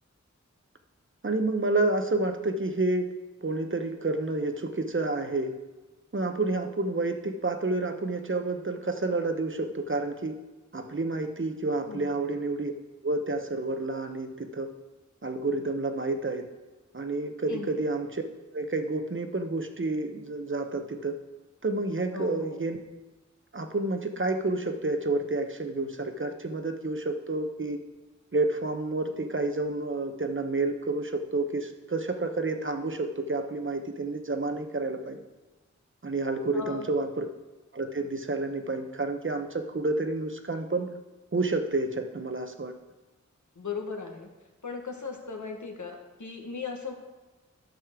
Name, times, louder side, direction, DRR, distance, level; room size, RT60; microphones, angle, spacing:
voice 1, 1.2-3.1 3.4-5.6 6.1-10.4 10.7-12.7 13.0-14.7 15.2-16.5 16.9-18.2 18.5-21.2 21.6-22.8 23.5-27.8 28.3-35.2 36.0-37.3 37.7-41.0 41.3-42.7, right 2 dB, 40° right, 6 dB, 0.9 m, -29 dB
voice 2, 22.1-22.6 36.5-36.9 43.5-44.3 44.6-46.9, left 4 dB, 75° left, 2 dB, 1.4 m, -37 dB
12.5 x 6.4 x 3.7 m, 1.2 s
wide cardioid pair, 60°, 30 cm